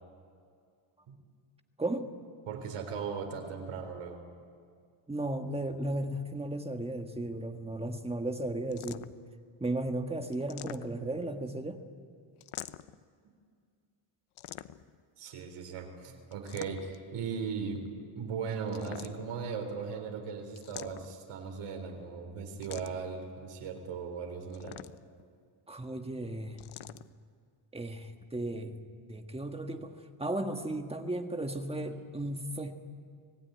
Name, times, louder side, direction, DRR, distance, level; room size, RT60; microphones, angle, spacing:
voice 1, 2.5-4.2 10.8-11.4 15.2-24.8, right 5 dB, 90° right, 3 dB, 4.0 m, -38 dB
voice 2, 5.1-9.0 9.6-11.8 25.7-26.6 27.7-28.8 29.1-32.7, right 1 dB, 10° right, 5 dB, 1.6 m, -35 dB
sound 1, 8.7-9.3 10.3-11.2 12.4-13.0 14.4-15.0 16.3-17.1 18.7-19.4 20.6-21.3 22.6-23.2 24.5-25.2 26.6-27.1, left 13 dB, 80° left, 0.9 m, -46 dB
25.5 x 18.0 x 9.5 m, 2.2 s
cardioid pair, 140°, 49 cm